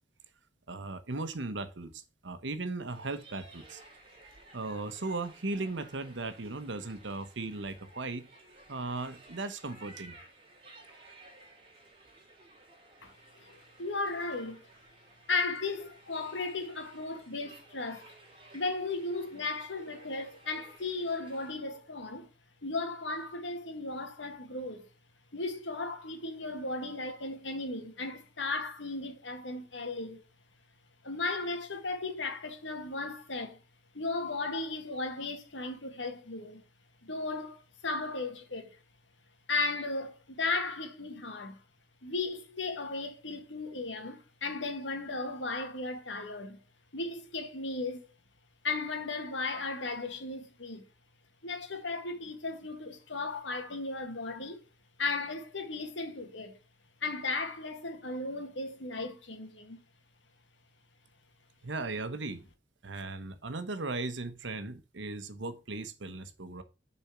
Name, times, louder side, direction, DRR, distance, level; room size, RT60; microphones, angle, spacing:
voice 1, 0.7-3.8 4.5-8.3 8.7-10.2 61.6-62.4 62.8-66.6, right 3 dB, 80° right, 1.0 m, -37 dB
sound 1, 2.9-21.5, right 2 dB, 30° right, 2.6 m, -56 dB
voice 2, 13.4-14.6 15.3-18.1 18.5-22.3 22.6-24.9 25.3-30.2 31.0-33.6 33.9-36.6 37.0-38.7 39.5-41.6 42.0-46.6 46.9-48.1 48.6-50.8 51.4-54.6 55.0-56.5 57.0-59.8, left 3 dB, 80° left, 1.8 m, -35 dB
6.9 x 4.4 x 5.9 m
head